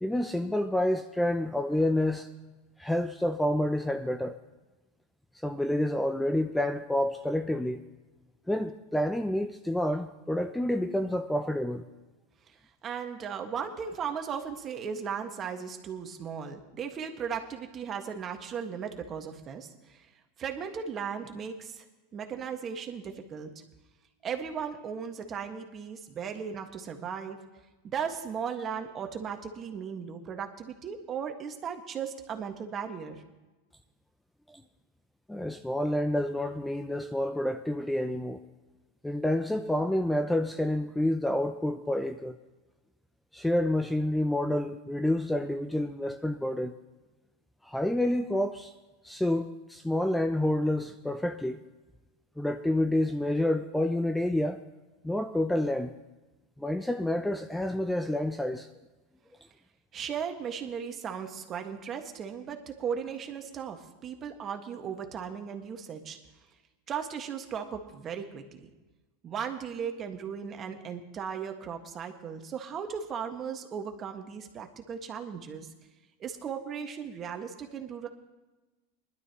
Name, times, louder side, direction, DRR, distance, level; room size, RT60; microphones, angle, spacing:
voice 1, 0.0-2.3 2.8-4.4 5.4-7.8 8.5-11.8 34.5-34.6 35.3-38.4 39.0-42.4 43.3-46.8 47.6-48.7 49.0-51.6 52.4-54.6 55.0-55.9 56.6-58.7, left 1 dB, 5° left, 0.6 m, -28 dB
voice 2, 12.8-20.1 20.4-21.8 22.1-23.5 24.2-27.4 27.8-33.2 59.9-66.2 66.9-68.7 69.2-75.7 76.2-78.1, right 7 dB, 35° right, 1.7 m, -36 dB
20.5 x 12.0 x 3.0 m
hypercardioid pair, 110°, 0 cm